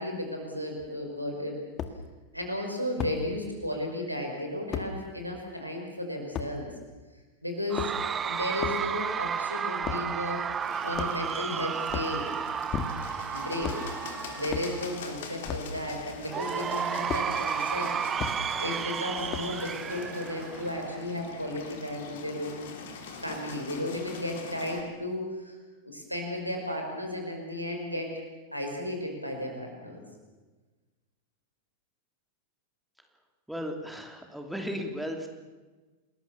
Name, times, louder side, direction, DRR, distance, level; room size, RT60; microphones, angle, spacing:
voice 1, 0.0-1.6 2.3-6.7 7.4-7.9 8.2-10.4 10.8-12.3 13.3-13.8 14.4-17.9 18.2-25.6 25.8-28.1 28.5-30.0, left 1 dB, 90° right, 2 dB, 5.6 m, -34 dB
sound 1, 0.8-0.9 1.8-2.0 3.0-3.2 4.7-4.9 6.3-6.5 7.6-8.1 8.6-8.8 9.8-10.1 10.9-11.4 11.8-12.2 12.7-13.2 13.6-13.9 14.5-14.7 15.4-15.7 17.1-17.3 18.2-18.4 19.3-19.6, left 8 dB, 30° left, 2.0 m, -34 dB
Cheering / Crowd, 7.7-15.0 16.3-21.0, right 7 dB, 20° right, 0.7 m, -33 dB
Bird, 10.6-24.8, left 4 dB, 55° left, 3.6 m, -43 dB
voice 2, 33.5-35.3, equal, ahead, 3 dB, 3.0 m, -35 dB
29.5 x 20.5 x 7.1 m, 1.3 s
figure-of-eight pair, 90°, 0 cm